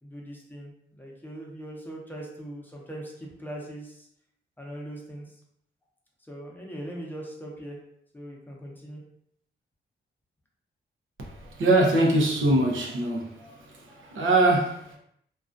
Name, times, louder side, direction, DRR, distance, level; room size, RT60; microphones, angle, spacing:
voice 1, 0.0-4.1 4.6-5.4 6.3-7.8 8.1-9.0, right 1 dB, 10° left, -2 dB, 0.7 m, -40 dB
voice 2, 11.2-15.0, right 2 dB, 80° right, -1 dB, 0.6 m, -23 dB
2.3 x 2.3 x 2.5 m, 0.74 s
cardioid pair, 75°, 20 cm